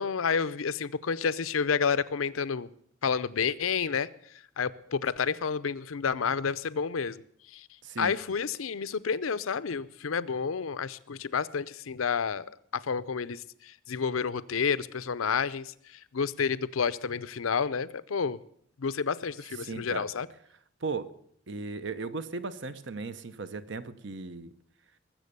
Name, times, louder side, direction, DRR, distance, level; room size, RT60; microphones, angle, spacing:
voice 1, 0.0-2.7 3.0-4.1 4.6-7.2 7.5-7.7 8.0-12.5 12.7-18.4 18.8-20.3, left 6 dB, 80° left, 16 dB, 0.6 m, -30 dB
voice 2, 7.8-8.1 19.6-20.0 20.8-21.1 21.5-24.5, right 4 dB, 60° right, 13 dB, 0.9 m, -36 dB
20.5 x 7.7 x 6.7 m, 0.66 s
head